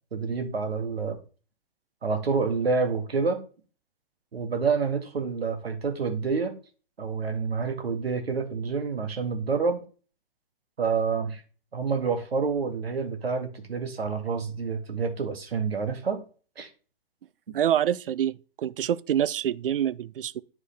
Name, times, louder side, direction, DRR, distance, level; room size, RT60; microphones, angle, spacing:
voice 1, 0.1-1.2 2.0-3.4 4.3-6.5 7.0-9.8 10.8-11.4 11.7-16.2 16.6-16.7, right 5 dB, 80° right, 2.0 m, -28 dB
voice 2, 17.5-20.4, right 10 dB, 65° right, 0.6 m, -26 dB
10.5 x 4.8 x 3.4 m
hypercardioid pair, 130°, 30 cm